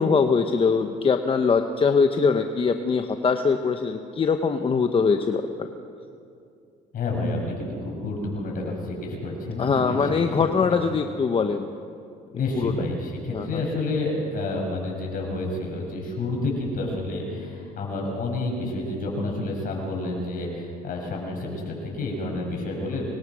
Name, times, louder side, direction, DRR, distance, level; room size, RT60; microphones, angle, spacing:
voice 1, 0.0-5.4 9.6-11.7 12.6-12.7 13.3-13.6, left 5 dB, 30° left, 6 dB, 1.1 m, -22 dB
voice 2, 6.9-10.8 12.3-23.0, left 2 dB, 55° left, 0 dB, 6.8 m, -29 dB
25.0 x 21.5 x 6.4 m, 2.4 s
cardioid pair, 110°, 17 cm